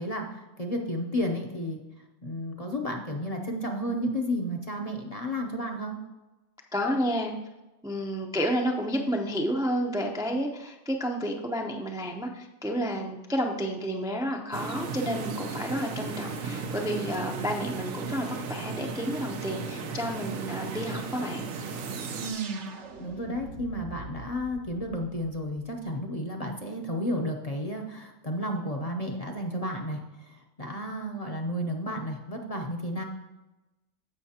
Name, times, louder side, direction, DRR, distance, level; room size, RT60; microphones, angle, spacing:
voice 1, 0.0-1.8 2.2-6.0 22.2-33.0, equal, 35° left, 2 dB, 0.7 m, -32 dB
voice 2, 6.7-7.3 7.8-21.5, equal, 5° right, 1 dB, 0.5 m, -30 dB
sound 1, 14.5-22.3, right 4 dB, 85° right, 1.2 m, -35 dB
sound 2, 21.5-26.0, right 5 dB, 65° right, 1.0 m, -44 dB
15.0 x 5.7 x 2.8 m, 1.0 s
omnidirectional pair, 1.3 m